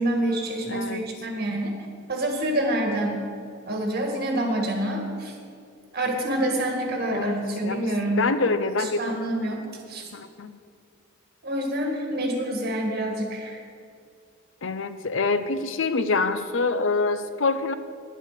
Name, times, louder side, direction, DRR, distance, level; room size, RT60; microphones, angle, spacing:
voice 1, 0.0-1.7 2.1-3.2 3.7-5.3 5.9-8.2 8.8-10.1 11.4-13.6, right 1 dB, 45° right, 2 dB, 1.8 m, -27 dB
voice 2, 0.7-1.1 7.1-7.4 7.6-9.2 10.1-10.6 14.6-17.7, left 3 dB, 65° left, 11 dB, 0.6 m, -26 dB
10.0 x 9.1 x 6.7 m, 2.3 s
head